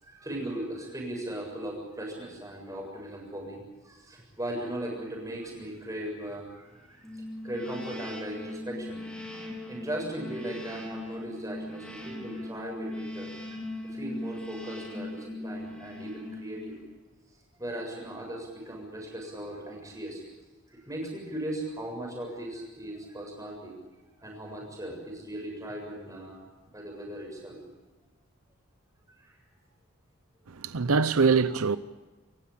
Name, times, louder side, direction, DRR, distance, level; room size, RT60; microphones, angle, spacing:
voice 1, 0.0-7.1 7.4-9.0 9.7-16.8 17.6-20.2 20.7-23.8 24.2-26.4 26.7-27.6 29.2-29.4, right 1 dB, 15° right, 7.3 m, -38 dB
sound 1, 7.0-17.0, left 1 dB, 5° left, 4.3 m, -39 dB
voice 2, 30.5-31.8, right 4 dB, 85° right, 0.7 m, -23 dB
28.0 x 15.5 x 8.5 m
head